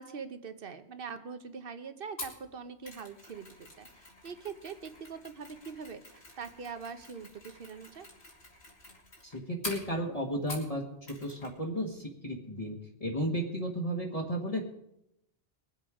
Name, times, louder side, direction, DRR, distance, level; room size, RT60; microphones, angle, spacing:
voice 1, 0.0-8.1, right 5 dB, 55° right, 10 dB, 1.1 m, -43 dB
Mechanisms, 2.2-10.8 11.1-11.5 11.8-11.9, left 1 dB, 70° left, 3.0 m, -47 dB
voice 2, 9.2-10.8 11.2-14.6, equal, 30° left, 0 dB, 1.6 m, -34 dB
21.5 x 7.8 x 4.9 m, 0.82 s
omnidirectional pair, 1.2 m